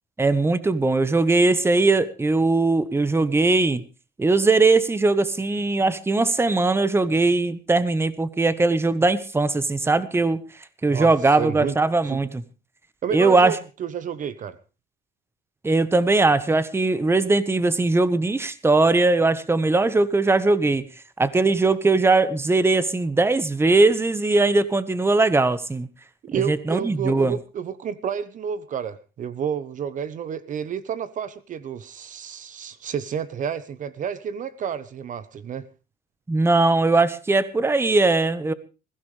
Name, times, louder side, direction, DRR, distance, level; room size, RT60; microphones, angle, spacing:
voice 1, 0.2-3.8 4.2-10.4 10.8-12.4 13.1-13.6 15.6-20.8 21.2-25.9 26.4-27.4 36.3-38.5, right 3 dB, 15° right, 1.2 m, -20 dB
voice 2, 11.4-11.7 12.1-12.3 13.0-14.6 26.2-35.7, right 8 dB, 50° right, 1.0 m, -30 dB
21.0 x 16.0 x 3.3 m
cardioid pair, 110°, 17 cm